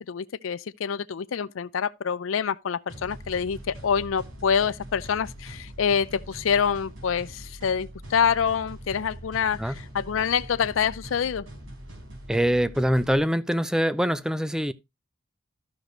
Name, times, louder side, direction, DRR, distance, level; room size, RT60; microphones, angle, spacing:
voice 1, 0.1-11.5, left 7 dB, 85° left, 0.5 m, -26 dB
sound 1, 2.9-13.2, equal, 85° right, 4.4 m, -42 dB
voice 2, 12.3-14.7, equal, 5° right, 0.4 m, -24 dB
12.5 x 6.6 x 3.0 m
head